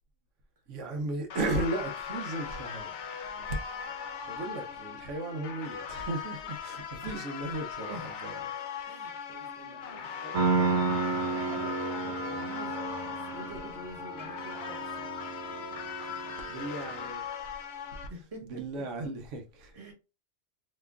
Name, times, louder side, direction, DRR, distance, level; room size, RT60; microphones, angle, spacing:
voice 1, 0.7-3.6 4.3-8.4 16.5-17.2 17.7-17.9 18.4-19.7, right 2 dB, 90° right, 1.0 m, -35 dB
sound 1, 1.3-18.1, left 7 dB, 75° left, 0.9 m, -39 dB
voice 2, 8.8-11.0 11.3-15.2 16.0-16.3 18.1-18.8 19.7-19.9, right 1 dB, 30° right, 1.0 m, -47 dB
Piano, 10.3-17.1, right 4 dB, 70° right, 0.9 m, -32 dB
3.4 x 2.9 x 2.2 m
omnidirectional pair, 1.2 m